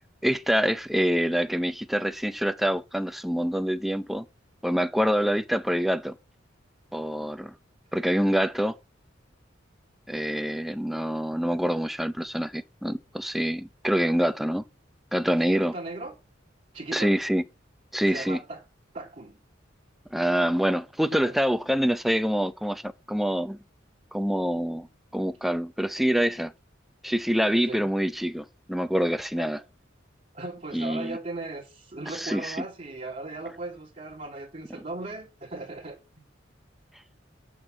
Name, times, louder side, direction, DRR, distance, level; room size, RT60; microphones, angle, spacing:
voice 1, 0.2-4.3 4.6-6.2 6.9-7.5 7.9-8.7 10.1-14.6 15.1-15.7 16.9-17.4 17.9-18.4 20.1-23.6 24.1-24.9 25.1-26.5 27.0-29.6 30.7-31.2 32.1-32.6, equal, ahead, 0.6 m, -26 dB
voice 2, 15.5-16.1 16.7-17.1 18.1-18.6 18.9-19.4 21.1-21.4 27.5-27.9 29.4-29.6 30.3-36.0, right 2 dB, 35° right, 2.0 m, -37 dB
9.3 x 6.2 x 7.5 m
head